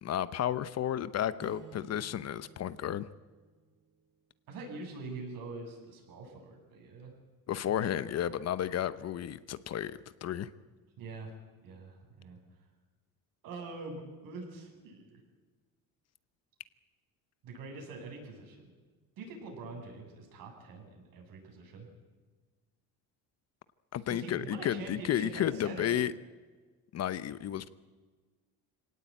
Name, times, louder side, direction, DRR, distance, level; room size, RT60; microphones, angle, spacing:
voice 1, 0.0-3.1 7.5-10.5 23.9-26.1 26.9-27.7, left 10 dB, 45° left, 15 dB, 0.9 m, -32 dB
sound 1, 1.4-4.2, right 7 dB, 80° right, 3.1 m, -55 dB
voice 2, 4.5-7.1 7.7-8.0 11.0-11.3 11.6-12.4 13.4-15.2 17.4-18.7 19.2-21.9 24.1-25.9, right 3 dB, 65° right, 2 dB, 7.8 m, -44 dB
24.5 x 18.0 x 8.9 m, 1.4 s
cardioid pair, 135°, 37 cm